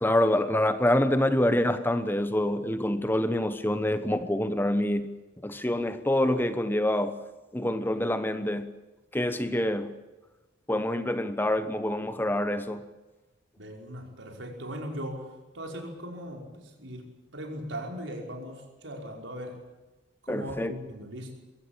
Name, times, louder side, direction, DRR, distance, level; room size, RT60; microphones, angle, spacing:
voice 1, 0.0-5.1 5.4-7.2 7.5-8.7 9.1-9.9 10.7-12.8 20.3-20.7, left 1 dB, 10° left, 1.1 m, -26 dB
voice 2, 13.6-19.6 20.2-21.3, equal, 80° right, 5.4 m, -39 dB
23.0 x 16.0 x 8.8 m
head